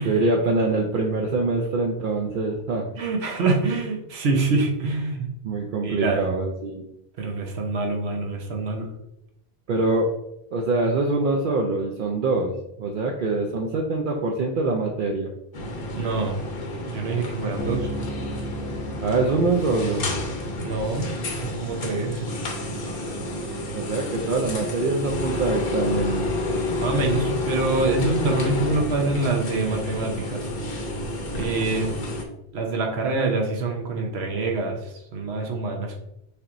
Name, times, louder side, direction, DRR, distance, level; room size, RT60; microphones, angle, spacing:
voice 1, 0.0-2.9 5.4-6.9 9.7-10.1 10.5-15.3 19.0-20.0 23.2-23.3 23.7-26.3, right 3 dB, 60° right, 0 dB, 0.7 m, -24 dB
voice 2, 3.0-5.3 5.8-6.2 7.2-8.9 15.9-16.4 16.9-17.9 20.6-21.1 21.4-22.2 26.8-30.5 31.3-31.9 32.5-34.8 35.1-36.0, right 3 dB, 80° right, 2 dB, 1.1 m, -25 dB
sound 1, 15.5-32.2, left 1 dB, 60° left, 0.9 m, -30 dB
Bass guitar, 17.6-21.2, equal, 85° left, 1.2 m, -36 dB
6.6 x 3.0 x 2.5 m, 0.82 s
omnidirectional pair, 1.1 m